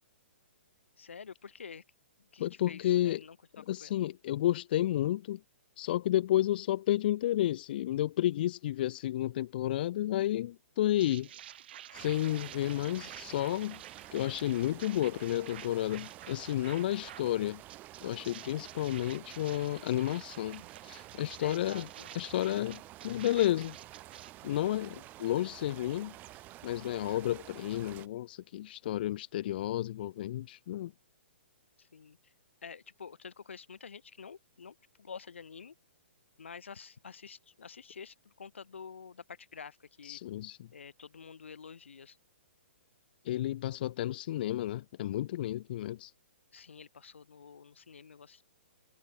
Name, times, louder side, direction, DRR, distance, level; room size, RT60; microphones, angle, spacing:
voice 1, 1.0-1.8 2.2-4.0 21.4-22.1 31.8-32.3 32.6-35.8 36.4-40.2 40.7-42.2 46.5-48.4, left 6 dB, 80° left, 2.2 m, -49 dB
voice 2, 2.4-3.2 3.7-5.4 5.8-11.3 11.9-13.8 14.1-17.6 18.0-21.9 22.1-23.8 24.4-26.1 26.6-30.9 40.0-40.7 43.2-46.1, left 13 dB, 50° left, 0.6 m, -31 dB
sound 1, 11.0-17.3 17.7-24.3, right 11 dB, 55° right, 1.0 m, -50 dB
sound 2, 11.9-28.1, right 16 dB, 25° right, 2.8 m, -50 dB
hypercardioid pair, 135°, 6 cm